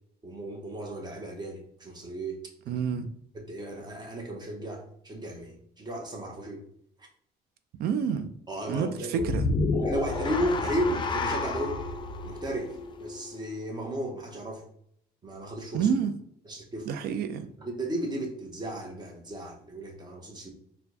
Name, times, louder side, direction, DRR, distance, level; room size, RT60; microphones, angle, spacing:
voice 1, 0.2-2.4 2.7-2.8 3.3-6.6 8.5-9.3 9.7-11.8 12.2-14.6 15.2-15.9 16.5-16.9 17.6-20.5, right 1 dB, 25° right, 0.9 m, -34 dB
voice 2, 2.7-3.1 7.8-8.3 8.7-9.4 15.7-16.1 16.9-17.5, right 7 dB, 70° right, 0.4 m, -28 dB
sound 1, 9.2-13.5, left 3 dB, 30° left, 0.3 m, -30 dB
4.3 x 2.2 x 2.7 m
cardioid pair, 110°, 17 cm